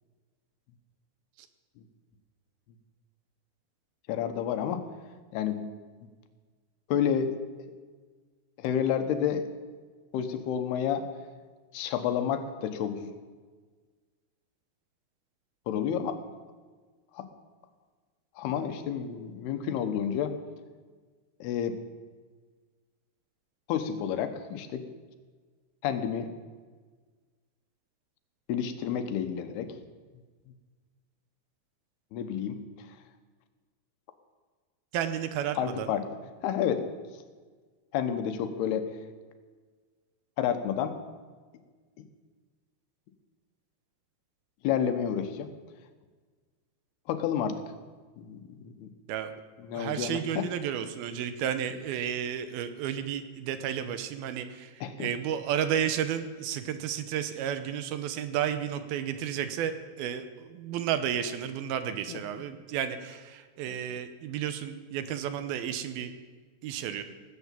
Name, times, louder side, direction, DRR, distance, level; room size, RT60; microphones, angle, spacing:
voice 1, 4.1-4.8 5.3-5.7 6.9-7.3 8.6-9.5 10.1-11.1 11.7-13.1 15.7-16.2 17.1-17.3 18.4-20.3 21.4-21.8 23.7-24.9 25.8-26.3 28.5-29.7 32.1-32.6 35.6-36.1 36.4-36.9 37.9-38.9 40.4-41.0 44.6-45.5 47.1-47.6 48.2-48.9 49.7-50.5 54.8-55.1 62.1-62.2, left 8 dB, 85° left, 8 dB, 3.0 m, -30 dB
voice 2, 34.9-35.9 49.1-49.3 49.7-66.1 66.6-67.0, right 9 dB, 80° right, 10 dB, 2.6 m, -32 dB
17.5 x 8.3 x 7.4 m, 1.5 s
omnidirectional pair, 4.5 m